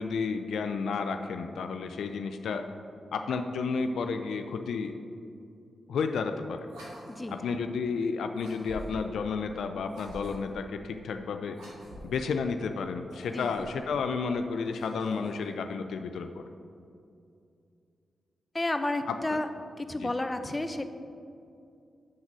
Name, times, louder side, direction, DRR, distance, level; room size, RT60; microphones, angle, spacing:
voice 1, 0.0-2.6 3.1-5.0 5.9-6.7 7.3-11.6 12.0-16.4 19.1-19.4 20.0-20.1, left 5 dB, 75° left, 7 dB, 0.3 m, -32 dB
sound 1, 6.6-7.5 8.3-9.1 9.9-10.6 11.5-12.2 13.0-13.9 14.6-15.5, equal, 80° right, 1.8 m, -47 dB
voice 2, 18.5-19.5 19.8-20.9, left 2 dB, 25° left, 8 dB, 0.6 m, -31 dB
7.4 x 3.9 x 6.0 m, 2.5 s
supercardioid pair, 40°, 0 cm